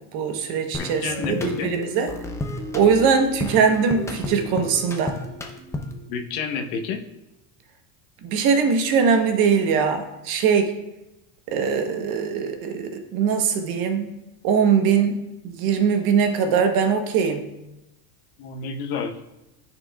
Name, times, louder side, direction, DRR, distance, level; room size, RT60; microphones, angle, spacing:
voice 1, 0.1-2.1 2.7-5.1 8.2-10.7 11.5-14.1 14.4-15.1 15.4-17.5, right 6 dB, 55° right, 6 dB, 1.0 m, -21 dB
sound 1, 0.7-6.1, left 2 dB, 5° left, 0.5 m, -33 dB
voice 2, 0.8-1.7 6.1-7.0 18.4-19.1, left 5 dB, 65° left, 5 dB, 1.0 m, -29 dB
9.9 x 6.0 x 2.3 m, 0.95 s
supercardioid pair, 140°, 45 cm